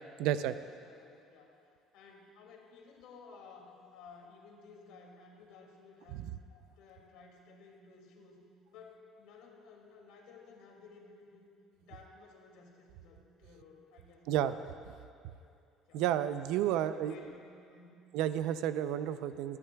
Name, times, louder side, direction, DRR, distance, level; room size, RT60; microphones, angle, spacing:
voice 1, 0.2-0.5 14.3-14.5 15.9-17.1 18.1-19.6, right 11 dB, 75° right, 12 dB, 0.4 m, -31 dB
voice 2, 0.9-1.6 1.9-8.4 8.7-11.5 11.8-14.6 14.9-15.0 15.4-15.6 15.9-16.0 16.5-17.4 17.7-18.0, left 4 dB, 85° left, 0 dB, 2.3 m, -56 dB
26.5 x 11.0 x 2.3 m, 2.4 s
cardioid pair, 165°, 0 cm